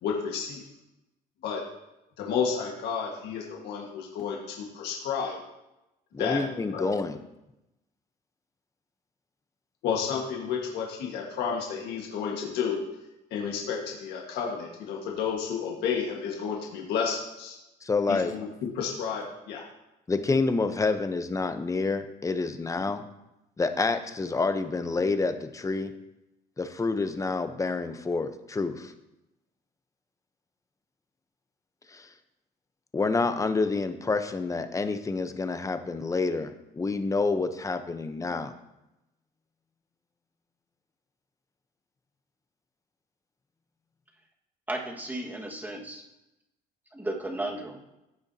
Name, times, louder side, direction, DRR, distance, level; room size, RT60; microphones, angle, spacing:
voice 1, 0.0-0.6 1.4-1.6 2.2-5.4 6.2-6.4 6.7-6.9 9.8-12.8 13.3-17.5 18.1-19.6, left 6 dB, 80° left, -1 dB, 1.6 m, -31 dB
voice 2, 6.1-7.2 17.8-18.3 20.1-23.0 23.6-25.9 26.6-28.9 31.9-32.1 32.9-38.5, left 3 dB, 20° left, 9 dB, 0.8 m, -28 dB
voice 3, 44.7-46.0 46.9-47.8, right 1 dB, 10° right, 0 dB, 1.6 m, -34 dB
15.5 x 6.9 x 2.8 m, 0.93 s
cardioid pair, 110°, 17 cm